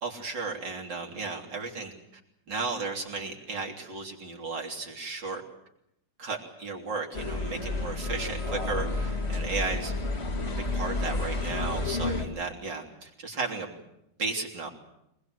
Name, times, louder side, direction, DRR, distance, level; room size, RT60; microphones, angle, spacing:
voice 1, 0.0-2.2 2.5-5.4 6.2-9.9 10.5-13.8 14.2-14.7, right 4 dB, 85° right, 0 dB, 4.0 m, -34 dB
sound 1, 7.1-12.2, left 2 dB, 35° left, 2.6 m, -30 dB
24.5 x 20.5 x 8.1 m, 0.83 s
omnidirectional pair, 1.9 m